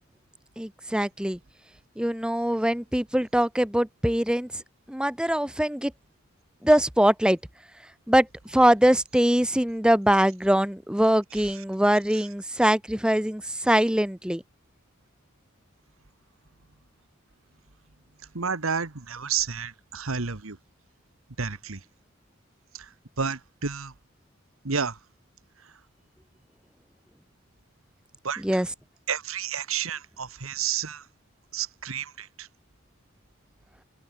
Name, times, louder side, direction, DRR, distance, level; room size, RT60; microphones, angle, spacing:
voice 1, 0.6-1.4 2.0-4.5 4.9-5.9 6.6-7.4 8.1-8.3 8.5-14.4 28.4-28.7, equal, 5° right, 0.9 m, -22 dB
voice 2, 11.3-11.6 12.1-12.3 18.3-20.6 21.4-21.8 22.7-23.9 24.6-25.0 28.2-28.6 29.1-31.0 31.5-32.5, right 6 dB, 85° right, 1.5 m, -31 dB
head